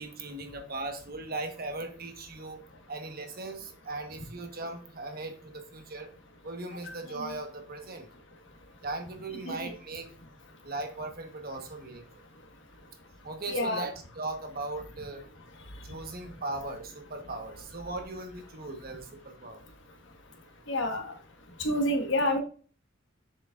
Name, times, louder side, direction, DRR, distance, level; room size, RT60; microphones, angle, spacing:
voice 1, 0.0-2.6 2.9-6.1 6.4-8.1 8.8-10.1 10.6-12.1 13.2-15.2 15.8-19.6, right 2 dB, 50° right, 4 dB, 1.3 m, -38 dB
voice 2, 13.5-13.9 20.7-21.1 21.6-22.4, left 1 dB, 70° left, 3 dB, 1.4 m, -29 dB
7.3 x 6.1 x 2.5 m, 0.40 s
head